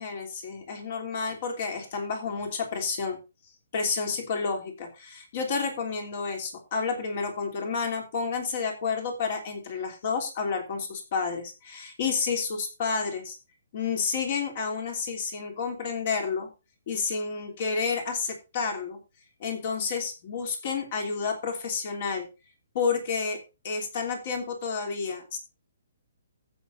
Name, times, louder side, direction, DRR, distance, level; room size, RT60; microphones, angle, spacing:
voice 1, 0.0-3.2 3.7-13.4 13.7-16.5 16.9-19.0 19.4-22.3 22.7-23.4 23.6-25.4, left 5 dB, 40° left, 4 dB, 3.2 m, -30 dB
14.5 x 8.2 x 2.6 m, 0.28 s
hypercardioid pair, 170°, 0 cm